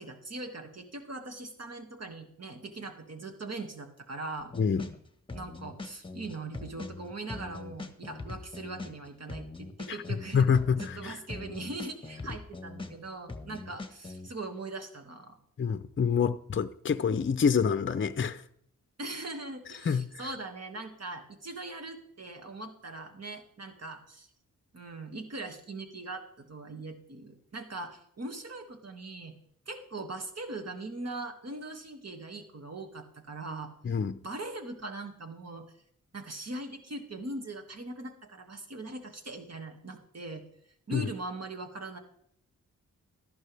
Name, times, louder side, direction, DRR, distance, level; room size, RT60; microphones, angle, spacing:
voice 1, 0.0-4.5 5.3-15.4 19.0-24.3 24.7-29.4 29.7-33.7 34.2-35.7 36.1-40.4 40.9-42.0, right 2 dB, 50° right, 2.1 m, -41 dB
sound 1, 4.4-5.0 5.3-9.0 9.3-13.0 13.3-14.3, left 3 dB, 15° left, 1.4 m, -41 dB
voice 2, 4.6-4.9 9.9-10.0 10.3-11.2 15.6-18.4 19.8-20.1 33.8-34.2 40.9-41.1, left 6 dB, 35° left, 0.6 m, -27 dB
13.5 x 11.5 x 3.4 m
cardioid pair, 60°, 33 cm